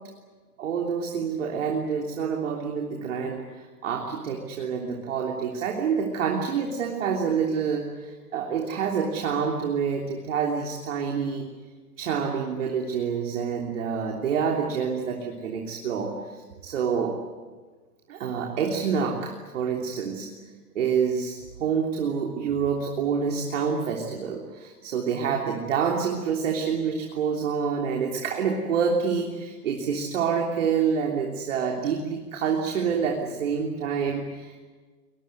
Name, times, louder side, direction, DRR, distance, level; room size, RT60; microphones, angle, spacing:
voice 1, 0.6-11.5 12.0-17.1 18.1-20.3 20.8-34.6, right 6 dB, 50° right, 1 dB, 3.4 m, -27 dB
23.0 x 22.0 x 9.5 m, 1.4 s
hypercardioid pair, 150°, 47 cm